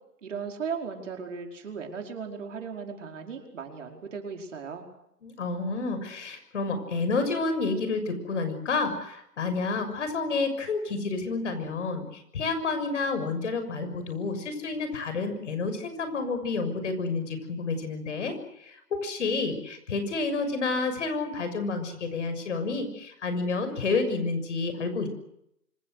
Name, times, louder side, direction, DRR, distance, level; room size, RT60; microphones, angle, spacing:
voice 1, 0.2-4.9, right 6 dB, 50° right, 3 dB, 5.1 m, -37 dB
voice 2, 5.2-18.3 18.6-25.1, left 3 dB, 50° left, 8 dB, 6.6 m, -29 dB
26.5 x 24.0 x 6.6 m, 0.77 s
hypercardioid pair, 160°, 47 cm